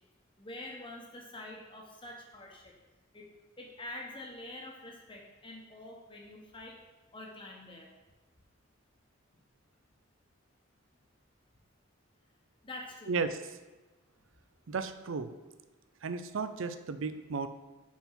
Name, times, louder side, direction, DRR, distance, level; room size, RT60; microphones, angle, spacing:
voice 1, 0.4-2.7 3.1-3.3 3.6-6.8 7.1-7.9 10.9-11.0 12.6-13.2, left 1 dB, 25° left, 0 dB, 1.1 m, -46 dB
voice 2, 13.1-13.4 14.7-15.3 16.0-17.5, right 4 dB, 70° right, 10 dB, 0.5 m, -34 dB
5.7 x 4.4 x 5.8 m, 1.2 s
head